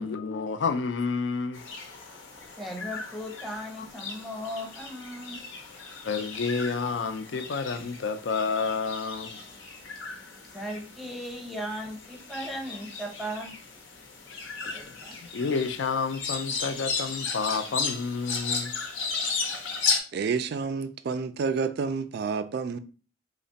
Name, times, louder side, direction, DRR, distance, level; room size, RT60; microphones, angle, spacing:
voice 1, 0.0-1.7 3.8-3.9 6.0-9.4 14.7-14.9 15.3-18.8, left 5 dB, 65° left, 0.4 m, -30 dB
sound 1, 1.5-20.0, left 5 dB, 85° left, 0.7 m, -35 dB
voice 2, 2.6-5.4 10.4-13.5 14.6-15.1, equal, ahead, 0.7 m, -37 dB
voice 3, 20.1-22.8, right 5 dB, 60° right, 0.3 m, -29 dB
3.2 x 2.1 x 3.9 m
head